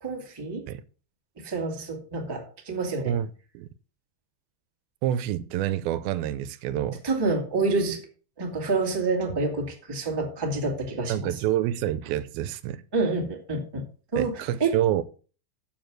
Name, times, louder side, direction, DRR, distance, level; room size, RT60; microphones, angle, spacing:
voice 1, 0.0-0.7 1.4-3.1 7.0-8.0 8.4-11.3 12.9-13.8 14.1-14.7, right 3 dB, 10° right, 1.2 m, -28 dB
voice 2, 3.1-3.7 5.0-7.0 11.1-12.8 14.2-15.0, right 12 dB, 85° right, 2.4 m, -28 dB
7.3 x 7.1 x 6.1 m
omnidirectional pair, 4.3 m